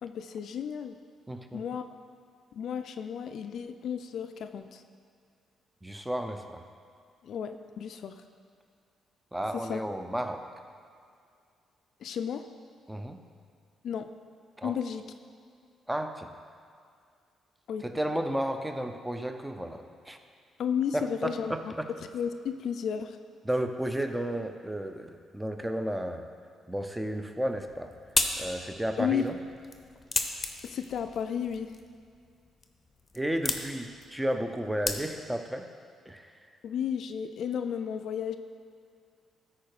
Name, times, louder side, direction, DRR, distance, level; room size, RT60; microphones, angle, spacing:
voice 1, 0.0-1.0 1.5-1.8 2.5-4.8 7.2-8.2 9.5-9.8 12.0-12.4 13.8-14.1 14.6-15.0 17.7-17.9 20.6-21.5 22.1-23.2 29.0-29.2 30.6-31.7 36.6-38.4, left 8 dB, 65° left, 8 dB, 0.4 m, -33 dB
voice 2, 1.3-1.6 5.8-6.6 9.3-10.5 12.9-13.2 14.6-14.7 15.9-16.3 17.8-20.2 20.9-21.9 23.5-26.3 26.7-27.9 28.4-29.4 33.1-35.7 36.1-36.3, right 1 dB, 5° right, 6 dB, 0.6 m, -33 dB
sound 1, 27.5-35.5, left 3 dB, 25° left, 0.8 m, -36 dB
13.0 x 4.4 x 4.8 m, 2.2 s
cardioid pair, 90°, 0 cm